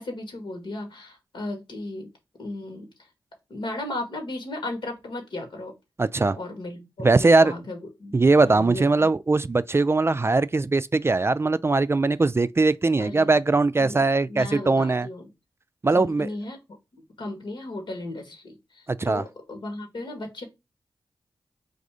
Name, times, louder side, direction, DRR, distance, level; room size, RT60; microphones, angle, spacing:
voice 1, 0.0-2.1 2.4-2.9 3.5-5.7 6.3-9.1 13.0-13.3 13.8-15.3 15.9-16.6 16.9-20.5, left 2 dB, 70° left, 1.8 m, -35 dB
voice 2, 6.0-6.4 7.0-7.5 8.1-15.1 15.8-16.3 18.9-19.2, right 3 dB, 30° right, 0.3 m, -20 dB
4.1 x 2.7 x 4.8 m
cardioid pair, 40°, 8 cm